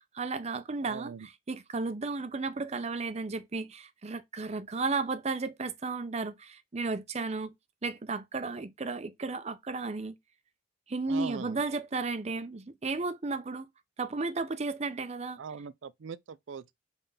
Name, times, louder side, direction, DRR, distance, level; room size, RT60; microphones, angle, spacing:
voice 1, 0.1-7.5 7.8-10.2 10.9-13.7 14.0-15.4, right 3 dB, 35° right, 0.6 m, -34 dB
voice 2, 0.8-1.3 11.1-11.6 15.4-16.7, right 6 dB, 85° right, 0.4 m, -41 dB
5.4 x 3.5 x 5.5 m
head